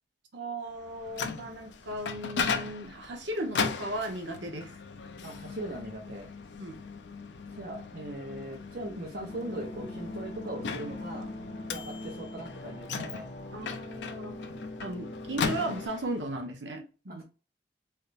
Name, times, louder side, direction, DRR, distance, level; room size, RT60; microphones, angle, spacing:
voice 1, 0.3-4.7 6.6-6.8 13.5-14.4 14.8-17.2, right 1 dB, 85° right, 4 dB, 0.9 m, -36 dB
Microwave oven, 0.8-16.2, left 5 dB, 75° left, 0.5 m, -37 dB
voice 2, 5.2-6.3 7.5-11.3 11.7-13.3 17.1-17.2, right 1 dB, 55° right, 1 dB, 0.8 m, -40 dB
sound 1, 9.3-15.9, left 1 dB, 40° left, 0.7 m, -42 dB
3.4 x 2.7 x 2.5 m, 0.33 s
head